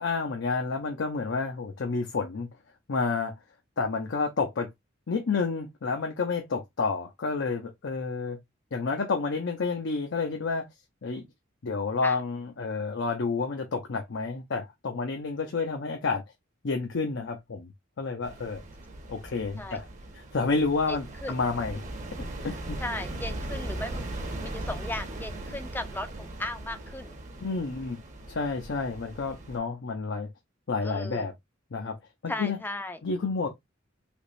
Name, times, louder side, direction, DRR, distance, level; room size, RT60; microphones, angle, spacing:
voice 1, 0.0-2.5 2.9-3.3 3.8-4.7 5.1-8.4 8.7-10.7 11.0-11.3 11.6-16.2 16.6-17.7 18.0-18.6 19.1-19.9 20.3-21.8 22.2-22.8 27.4-28.0 28.3-30.3 30.7-31.3 31.7-32.0 32.2-32.6 33.0-33.5, left 4 dB, 65° left, 0.6 m, -30 dB
sound 1, 18.2-29.6, right 1 dB, 40° right, 0.8 m, -39 dB
voice 2, 20.9-21.3 22.8-24.0 24.4-27.2 30.8-31.3 32.3-33.0, left 2 dB, 10° left, 0.5 m, -36 dB
3.5 x 2.9 x 2.5 m
head